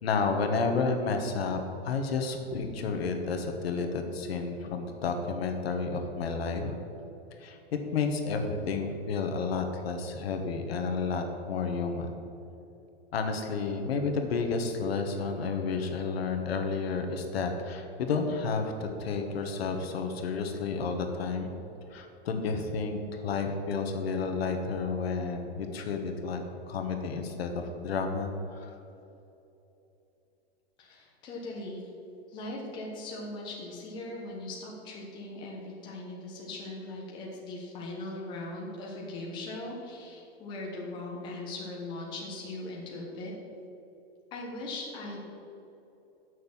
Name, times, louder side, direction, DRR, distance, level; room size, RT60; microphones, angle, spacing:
voice 1, 0.0-6.7 7.4-7.6 7.9-12.1 13.1-21.5 21.9-28.7, left 4 dB, 70° left, 5 dB, 1.4 m, -31 dB
voice 2, 30.8-31.8 32.3-43.3 44.3-45.2, left 2 dB, 15° left, -3 dB, 1.0 m, -39 dB
8.1 x 6.4 x 7.2 m, 2.9 s
supercardioid pair, 175°, 31 cm